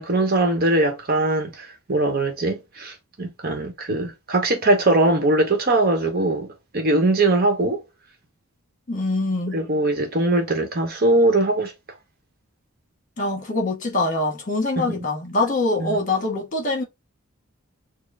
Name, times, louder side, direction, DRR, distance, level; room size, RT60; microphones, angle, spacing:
voice 1, 0.0-7.8 9.5-11.7 14.8-14.9 15.8-16.0, right 2 dB, 45° right, 0.9 m, -21 dB
voice 2, 8.9-9.6 13.2-16.8, left 2 dB, 35° left, 1.3 m, -24 dB
4.2 x 2.0 x 3.3 m
head